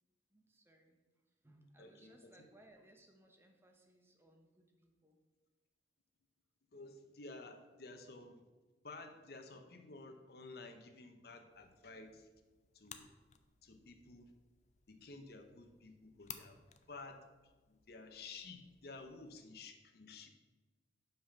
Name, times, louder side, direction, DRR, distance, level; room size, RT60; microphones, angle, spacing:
voice 1, 0.3-1.0 1.2-5.2, right 1 dB, 15° right, 2 dB, 0.9 m, -65 dB
voice 2, 1.8-2.3 6.7-8.4 8.8-12.3 12.7-13.1 13.6-14.3 14.9-16.6 16.9-20.3, left 3 dB, 60° left, 6 dB, 0.8 m, -53 dB
sound 1, 11.5-19.4, left 9 dB, 40° left, 0.5 m, -59 dB
5.7 x 5.5 x 5.7 m, 1.2 s
head